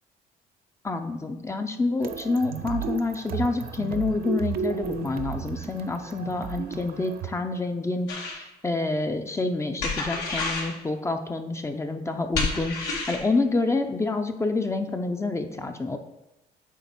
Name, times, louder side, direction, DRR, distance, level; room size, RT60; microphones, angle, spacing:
voice 1, 0.8-16.0, left 3 dB, 15° left, 6 dB, 0.6 m, -28 dB
sound 1, 2.0-7.3, right 7 dB, 65° right, 0.6 m, -34 dB
sound 2, 8.1-8.4 9.8-10.7 12.3-13.2, left 3 dB, 85° left, 2.1 m, -29 dB
8.4 x 3.1 x 6.0 m, 0.94 s
cardioid pair, 110°, 17 cm